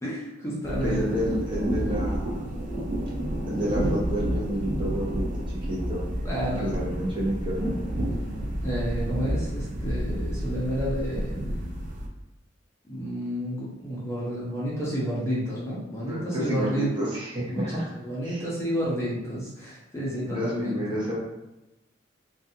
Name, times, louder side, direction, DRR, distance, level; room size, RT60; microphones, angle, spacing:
voice 1, 0.0-1.2 6.2-7.1 8.6-11.4 12.9-16.9 17.5-20.8, equal, 15° left, -7 dB, 0.6 m, -30 dB
sound 1, 0.6-12.1, equal, 45° right, 0.4 m, -30 dB
voice 2, 0.7-2.5 3.5-6.0 6.6-8.0 16.0-17.9 18.2-18.4 20.2-21.2, equal, 25° right, -6 dB, 0.7 m, -30 dB
2.5 x 2.3 x 2.7 m, 0.97 s
head